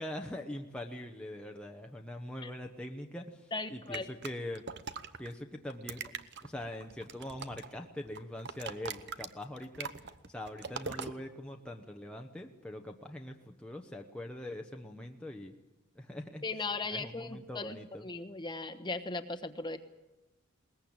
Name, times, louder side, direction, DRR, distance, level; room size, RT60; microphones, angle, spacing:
voice 1, 0.0-4.6 5.2-6.0 6.4-15.5 15.9-16.4 16.9-18.0, left 1 dB, 5° left, 2 dB, 1.0 m, -43 dB
voice 2, 3.5-4.1 16.4-17.8 18.0-19.8, left 3 dB, 20° left, 10 dB, 1.2 m, -37 dB
sound 1, 3.9-5.3 5.7-7.8 8.1-11.1, right 6 dB, 50° right, 1.0 m, -42 dB
21.5 x 20.0 x 8.8 m, 0.99 s
head